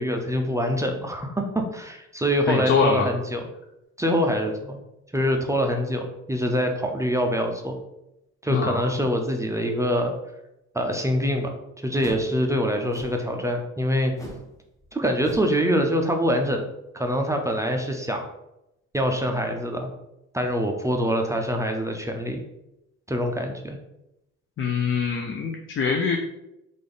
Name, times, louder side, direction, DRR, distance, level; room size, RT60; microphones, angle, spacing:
voice 1, 0.0-1.5 1.7-3.5 4.0-4.8 5.1-7.8 8.4-10.1 10.7-11.5 11.8-14.1 14.9-16.6 16.9-18.2 18.9-19.9 20.3-22.4 23.1-23.8, equal, 10° right, 3 dB, 0.5 m, -24 dB
voice 2, 2.5-3.1 8.5-8.8 24.6-26.2, left 6 dB, 45° left, 2 dB, 0.5 m, -23 dB
sound 1, 12.0-12.3 12.9-13.3 14.2-14.5 14.8-14.9 15.2-15.6, left 1 dB, 10° left, 0.8 m, -40 dB
3.3 x 2.5 x 3.8 m, 0.87 s
cardioid pair, 90°, 30 cm